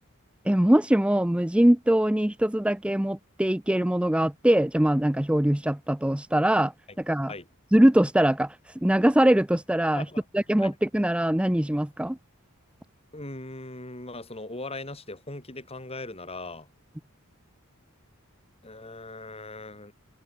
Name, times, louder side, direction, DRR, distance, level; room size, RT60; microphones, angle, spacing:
voice 1, 0.5-6.7 7.0-7.3 7.7-10.1 10.3-12.2, right 1 dB, 5° right, 0.5 m, -22 dB
voice 2, 13.1-16.7 18.6-19.9, left 2 dB, 30° left, 7.5 m, -39 dB
head